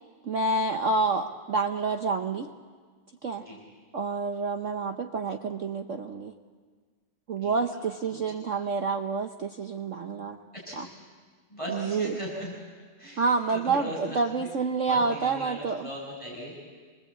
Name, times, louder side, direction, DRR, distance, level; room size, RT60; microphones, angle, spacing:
voice 1, 0.2-2.5 3.2-3.4 3.9-6.3 7.3-10.4 10.8-10.9 11.7-12.2 13.2-15.9, right 4 dB, 60° right, 5 dB, 0.8 m, -28 dB
voice 2, 11.5-12.5 13.0-14.5 14.8-16.6, equal, 15° left, -4 dB, 6.8 m, -38 dB
27.0 x 20.5 x 8.5 m, 1.5 s
omnidirectional pair, 2.3 m